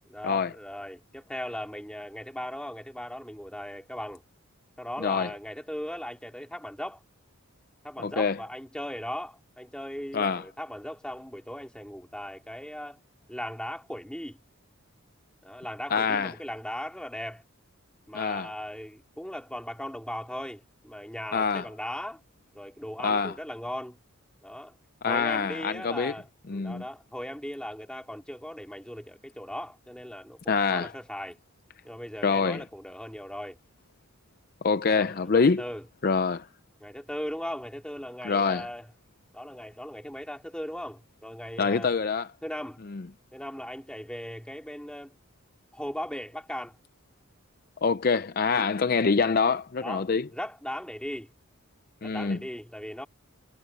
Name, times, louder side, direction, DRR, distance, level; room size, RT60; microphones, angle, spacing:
voice 1, 0.1-4.2 4.8-7.0 7.8-13.0 13.3-14.4 15.4-17.4 18.1-22.2 22.5-24.0 24.4-24.8 25.0-31.4 31.8-33.6 34.9-35.9 36.8-38.9 39.3-42.0 42.4-42.8 43.3-45.2 45.7-46.8 49.8-51.3 52.0-53.1, equal, 5° left, 3.1 m, -38 dB
voice 2, 5.0-5.3 8.0-8.4 10.1-10.4 15.9-16.3 18.1-18.5 21.3-21.7 23.0-23.3 25.0-26.1 26.5-26.8 30.5-30.9 32.2-32.6 34.6-35.6 36.0-36.5 38.2-38.7 41.6-42.3 42.9-43.0 47.8-50.3 52.0-52.4, left 5 dB, 45° left, 0.5 m, -25 dB
head